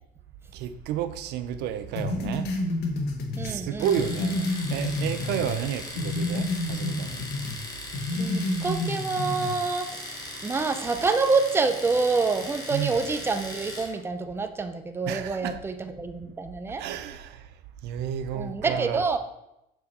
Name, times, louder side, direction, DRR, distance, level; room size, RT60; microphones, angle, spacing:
voice 1, 0.5-2.5 3.4-7.3 12.7-13.0 15.1-15.6 16.8-17.5 17.8-19.0, right 9 dB, 80° right, 10 dB, 0.5 m, -31 dB
sound 1, 2.0-5.6 6.0-7.6 7.9-9.6, left 2 dB, 80° left, 1.0 m, -29 dB
voice 2, 3.4-3.9 8.2-16.8 18.3-19.2, right 4 dB, 15° right, 8 dB, 0.5 m, -27 dB
Domestic sounds home sounds, 3.8-14.0, left 1 dB, 20° left, 1.2 m, -39 dB
6.3 x 4.5 x 4.2 m, 0.85 s
cardioid pair, 110°, 17 cm